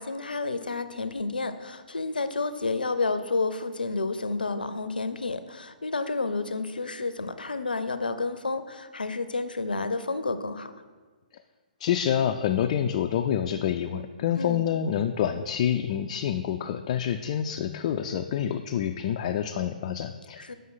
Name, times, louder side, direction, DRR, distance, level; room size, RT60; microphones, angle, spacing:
voice 1, 0.0-10.7 14.4-14.6 20.4-20.5, left 3 dB, 85° left, 11 dB, 0.6 m, -30 dB
voice 2, 11.8-20.5, left 9 dB, 40° left, 5 dB, 0.4 m, -27 dB
7.7 x 5.4 x 5.6 m, 1.4 s
figure-of-eight pair, 130°, 5 cm